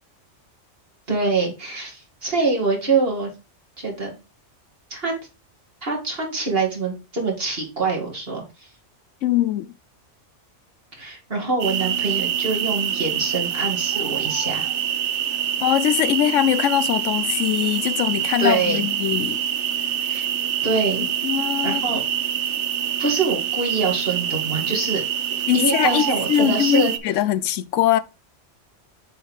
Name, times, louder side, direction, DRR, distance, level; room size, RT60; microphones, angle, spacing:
voice 1, 1.1-3.3 3.8-4.1 4.9-5.1 5.8-8.7 11.0-14.7 18.4-18.8 20.0-20.3 20.6-21.1 21.6-22.0 23.0-25.0 25.5-26.9, right 3 dB, 50° right, 2.5 m, -24 dB
voice 2, 9.2-9.7 15.6-19.4 21.2-21.8 25.5-28.0, left 12 dB, 85° left, 0.9 m, -21 dB
sound 1, 11.6-27.0, right 9 dB, 70° right, 1.0 m, -25 dB
7.3 x 4.5 x 3.6 m
omnidirectional pair, 1.2 m